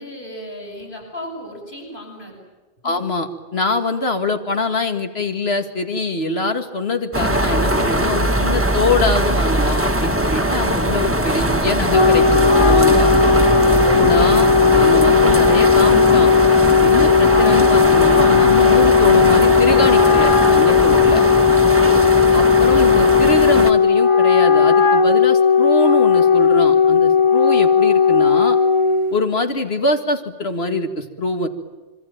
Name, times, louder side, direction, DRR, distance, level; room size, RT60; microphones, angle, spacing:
voice 1, 0.0-2.4 2.8-3.0 21.5-22.0, equal, 55° left, 0 dB, 8.2 m, -35 dB
voice 2, 2.8-13.1 13.8-16.3 16.8-21.2 22.3-28.6 29.1-31.5, left 2 dB, 80° left, 7 dB, 2.4 m, -23 dB
sound 1, 7.1-23.7, right 1 dB, 15° right, 1.3 m, -20 dB
Wind instrument woodwind instrument, 11.7-29.1, left 6 dB, 30° left, 1.4 m, -15 dB
26.0 x 24.5 x 9.0 m, 1.3 s
omnidirectional pair, 1.0 m